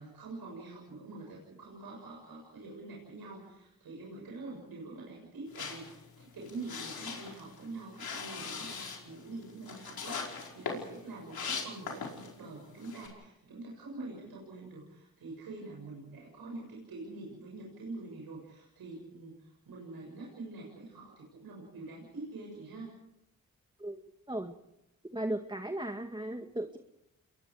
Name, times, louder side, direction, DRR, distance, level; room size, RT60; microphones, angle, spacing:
voice 1, 0.0-23.0, right 3 dB, 85° right, -2 dB, 7.2 m, -45 dB
sound 1, 5.5-12.4 12.8-13.1, left 5 dB, 85° left, 5.2 m, -41 dB
voice 2, 25.1-26.8, right 1 dB, 15° right, 5 dB, 1.9 m, -36 dB
29.0 x 22.5 x 5.0 m, 0.82 s
cardioid pair, 45°, 36 cm